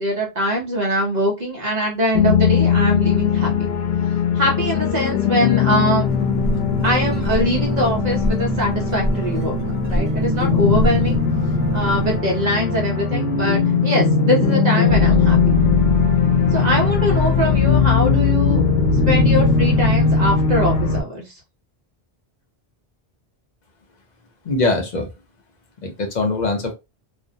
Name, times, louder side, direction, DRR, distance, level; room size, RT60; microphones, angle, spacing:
voice 1, 0.0-3.5 4.3-6.1 6.8-9.6 9.9-11.2 11.7-15.4 16.5-18.6 19.1-21.3, equal, 45° right, -1 dB, 0.8 m, -22 dB
sound 1, 2.1-21.0, left 5 dB, 85° left, 0.8 m, -19 dB
sound 2, 6.0-12.2, right 2 dB, 15° right, 0.9 m, -25 dB
voice 2, 24.4-25.1 25.8-26.7, left 3 dB, 50° left, 3 dB, 0.6 m, -22 dB
2.5 x 2.0 x 2.6 m, 0.25 s
omnidirectional pair, 1.0 m